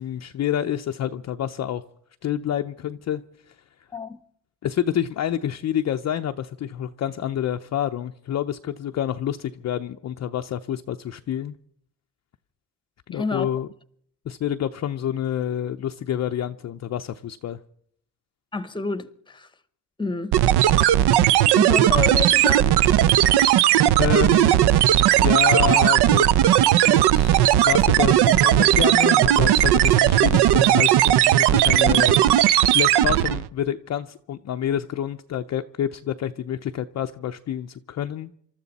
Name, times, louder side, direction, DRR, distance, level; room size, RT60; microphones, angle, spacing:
voice 1, 0.0-1.8 2.2-3.2 3.5-3.6 4.6-11.5 13.1-13.7 14.3-17.6 24.0-24.6 25.1-26.3 26.8-32.2 32.7-38.3, left 10 dB, 40° left, 0.6 m, -28 dB
voice 2, 13.1-13.5 18.5-19.5 20.0-20.4 21.5-22.8 28.6-28.8, left 4 dB, 10° left, 0.9 m, -29 dB
sound 1, 20.3-33.5, right 12 dB, 65° right, 0.7 m, -17 dB
27.0 x 13.0 x 4.1 m
cardioid pair, 120°, 43 cm